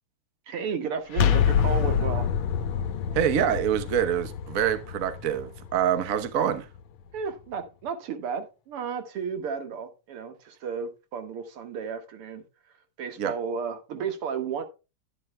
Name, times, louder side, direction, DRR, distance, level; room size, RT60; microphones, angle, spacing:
voice 1, 0.5-2.3 7.1-12.4 13.0-14.6, right 6 dB, 90° right, 2.5 m, -33 dB
sound 1, 1.1-6.8, left 8 dB, 90° left, 1.7 m, -27 dB
voice 2, 3.1-6.7 13.2-13.3, right 9 dB, 50° right, 1.2 m, -25 dB
11.5 x 10.5 x 2.2 m
omnidirectional pair, 2.4 m